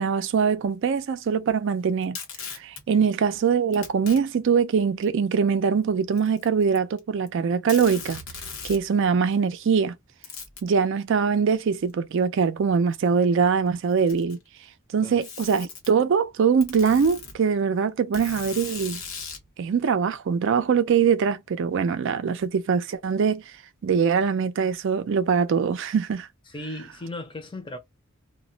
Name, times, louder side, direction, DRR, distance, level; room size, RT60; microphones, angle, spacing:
voice 1, 0.0-2.2 2.5-8.2 8.6-9.9 10.6-14.4 14.9-19.0 19.6-23.4 23.8-26.3, right 6 dB, 65° right, 0.4 m, -23 dB
Packing tape duct tape, 2.0-2.8 3.7-4.2 5.0-5.1 6.1-7.0 7.3-7.4 7.7-8.9 10.2-10.7 11.9-12.0 12.9-13.0 13.8-14.5 15.2-15.9 16.6-17.4 18.1-19.5, left 5 dB, 85° left, 0.9 m, -38 dB
voice 2, 26.5-27.8, left 1 dB, 25° left, 0.5 m, -37 dB
2.2 x 2.0 x 3.8 m
head